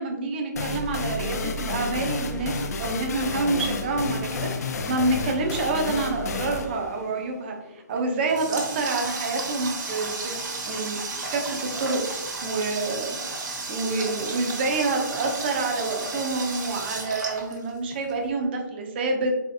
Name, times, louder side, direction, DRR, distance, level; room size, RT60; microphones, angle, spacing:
voice 1, 0.0-10.3 10.7-11.0 11.3-12.0 12.4-19.4, right 3 dB, 30° right, 2 dB, 0.6 m, -27 dB
sound 1, 0.6-8.0, left 3 dB, 55° left, 0.4 m, -31 dB
Water tap faucet, 7.9-18.1, right 3 dB, 65° right, 1.2 m, -33 dB
4.2 x 3.1 x 2.6 m, 0.97 s
hypercardioid pair, 165°, 11 cm